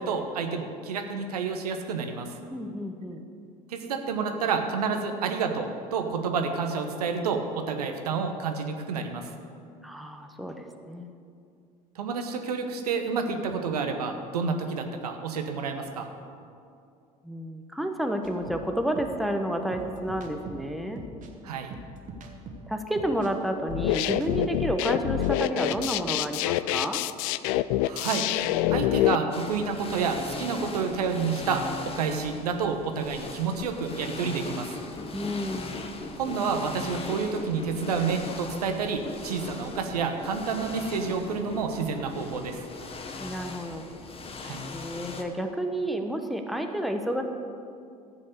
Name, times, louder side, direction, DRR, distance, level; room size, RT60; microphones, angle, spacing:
voice 1, 0.0-2.4 3.7-9.3 12.0-16.1 21.4-21.7 27.8-28.3 28.7-34.8 36.2-42.6 44.4-44.6, right 5 dB, 75° right, 5 dB, 1.0 m, -29 dB
voice 2, 2.5-3.2 9.8-11.1 17.2-21.0 22.7-27.0 35.1-35.7 43.2-43.9 44.7-47.2, right 1 dB, ahead, 5 dB, 1.1 m, -30 dB
sound 1, 18.2-25.3 25.6-26.1, right 2 dB, 40° right, 1.6 m, -43 dB
sound 2, 23.7-29.2, left 15 dB, 55° left, 0.4 m, -26 dB
sound 3, 29.3-45.2, left 4 dB, 30° left, 1.3 m, -39 dB
14.0 x 7.7 x 6.6 m, 2.5 s
figure-of-eight pair, 65°, 20 cm